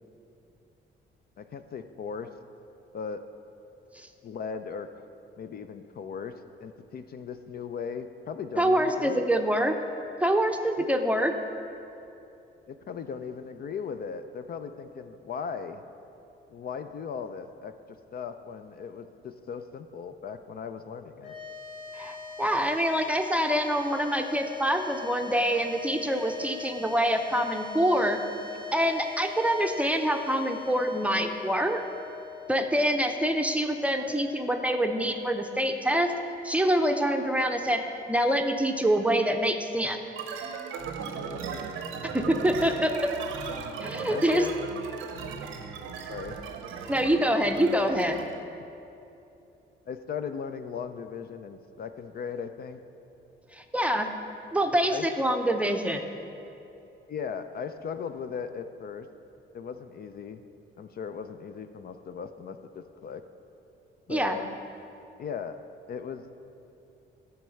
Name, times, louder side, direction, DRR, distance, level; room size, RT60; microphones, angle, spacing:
voice 1, 1.4-2.3 2.9-3.2 4.2-5.0 5.4-6.3 6.6-9.3 10.8-10.9 12.7-15.8 16.5-17.7 18.1-21.3 41.3-41.6 44.1-44.8 46.1-46.4 49.9-52.8 54.9-55.3 57.1-59.1 59.5-60.4 60.8-63.2 64.1-64.5 65.2-65.6 65.9-66.2, left 6 dB, 50° left, 9 dB, 0.5 m, -37 dB
voice 2, 8.6-9.8 10.2-11.3 22.0-28.2 28.7-31.8 32.5-36.1 36.4-37.8 38.1-40.0 42.1-43.1 43.8-44.5 46.9-48.2 53.5-54.1 54.5-56.0 64.1-64.4, equal, 5° right, 5 dB, 0.6 m, -25 dB
sound 1, 21.2-35.6, left 6 dB, 75° left, 1.9 m, -42 dB
sound 2, 40.1-48.4, right 6 dB, 85° right, 0.8 m, -37 dB
11.0 x 4.6 x 6.4 m, 2.8 s
cardioid pair, 90°, 20 cm